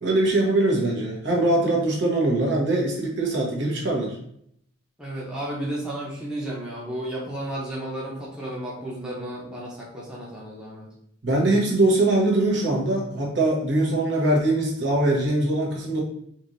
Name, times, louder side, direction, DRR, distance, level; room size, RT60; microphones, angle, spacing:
voice 1, 0.0-4.1 11.2-16.0, right 2 dB, 55° right, -2 dB, 1.2 m, -22 dB
voice 2, 5.0-10.9, right 1 dB, 5° right, -6 dB, 0.8 m, -33 dB
5.3 x 3.1 x 2.6 m, 0.69 s
head